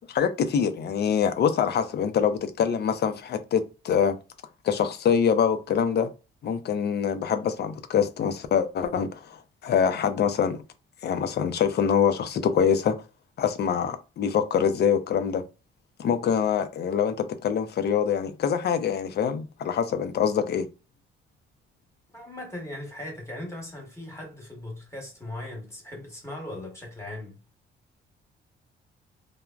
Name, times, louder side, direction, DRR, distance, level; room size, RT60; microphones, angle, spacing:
voice 1, 0.1-4.2 4.6-6.1 6.4-10.6 11.0-13.0 13.4-15.4 16.0-20.7, left 7 dB, 55° left, 0.5 m, -24 dB
voice 2, 22.1-27.4, left 1 dB, 15° left, 1.1 m, -38 dB
3.3 x 2.1 x 2.3 m
cardioid pair, 90°, 20 cm